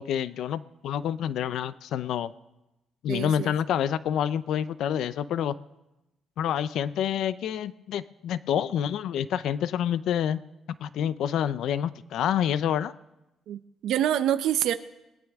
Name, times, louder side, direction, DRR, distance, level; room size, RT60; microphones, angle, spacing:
voice 1, 0.0-2.3 3.0-5.5 6.4-10.4 10.8-12.9, left 9 dB, 80° left, 15 dB, 0.6 m, -28 dB
voice 2, 3.1-3.5 13.5-14.7, right 11 dB, 80° right, 11 dB, 0.7 m, -26 dB
21.5 x 18.5 x 3.6 m, 0.96 s
cardioid pair, 90°, 0 cm